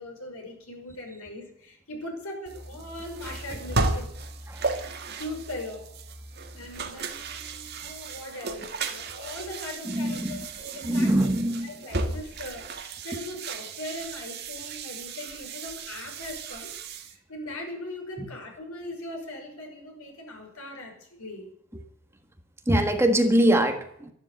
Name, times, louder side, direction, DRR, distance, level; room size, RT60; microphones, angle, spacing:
voice 1, 0.0-4.1 5.2-5.9 6.5-11.3 11.6-21.5, left 1 dB, 85° left, 2 dB, 5.9 m, -40 dB
sound 1, 2.5-17.2, right 3 dB, 50° right, 1.8 m, -35 dB
voice 2, 9.9-10.4 10.8-11.7 22.7-24.1, right 1 dB, 10° right, 5 dB, 1.5 m, -23 dB
13.0 x 12.0 x 8.2 m, 0.69 s
head